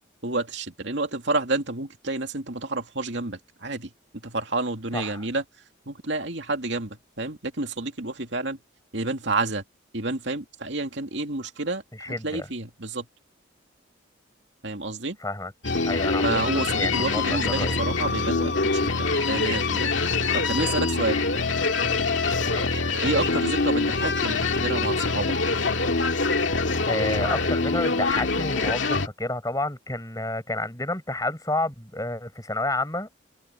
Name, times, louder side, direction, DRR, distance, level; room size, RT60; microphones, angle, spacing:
voice 1, 0.2-3.9 4.2-5.4 5.9-8.6 8.9-9.6 9.9-13.1 14.6-15.2 16.2-19.9 20.3-21.2 23.0-25.3, right 2 dB, 65° right, 2.5 m, -29 dB
voice 2, 4.9-5.2 11.9-12.5 15.2-15.5 15.8-17.8 22.4-22.9 26.9-33.1, left 2 dB, 15° left, 6.8 m, -30 dB
sound 1, 15.6-29.1, left 3 dB, 70° left, 2.2 m, -24 dB
head